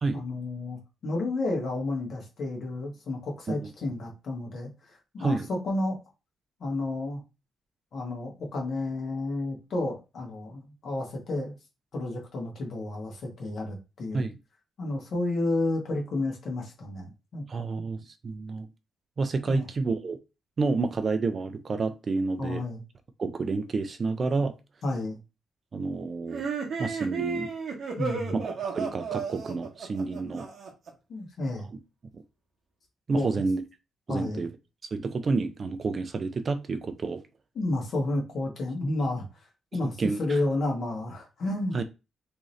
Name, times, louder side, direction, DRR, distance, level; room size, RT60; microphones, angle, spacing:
voice 1, 0.1-6.0 6.6-7.2 7.9-11.5 11.9-14.3 14.8-17.7 19.5-19.6 22.4-22.8 24.8-25.2 28.0-28.4 31.1-31.7 33.1-33.3 34.1-34.5 37.5-39.2 39.7-41.8, left 2 dB, 50° left, 1.3 m, -31 dB
voice 2, 17.5-18.7 19.2-20.2 20.6-22.6 23.2-24.5 25.7-26.4 26.8-27.5 28.3-30.5 32.1-32.2 33.1-33.6 34.1-34.5 34.9-37.2 40.0-40.4 41.7-41.8, right 3 dB, 30° right, 0.3 m, -29 dB
sound 1, 26.3-30.9, right 5 dB, 55° right, 0.9 m, -33 dB
3.6 x 2.7 x 3.1 m
cardioid pair, 155°, 0 cm